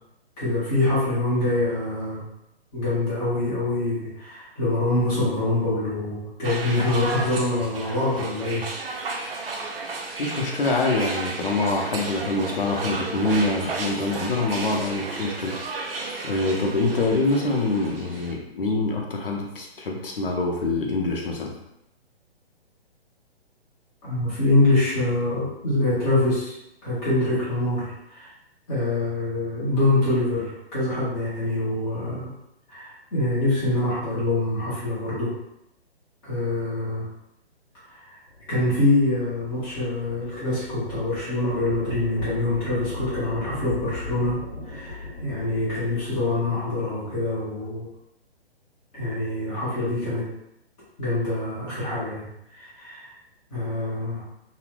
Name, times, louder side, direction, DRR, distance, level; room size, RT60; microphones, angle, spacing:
voice 1, 0.4-2.2 2.7-8.6 24.0-26.5 26.8-28.3 28.7-32.3 32.7-35.3 36.2-37.0 37.9-38.2 38.5-44.4 44.6-47.9 48.9-50.3 51.0-53.1 53.5-54.2, left 2 dB, 10° left, -11 dB, 0.5 m, -25 dB
sound 1, 6.4-18.3, right 3 dB, 60° right, 0.5 m, -33 dB
voice 2, 10.2-15.5 16.2-21.5, left 2 dB, 60° left, 0 dB, 0.7 m, -25 dB
sound 2, 38.3-46.3, left 3 dB, 85° left, 1.0 m, -39 dB
2.7 x 2.0 x 3.1 m, 0.82 s
figure-of-eight pair, 130°, 32 cm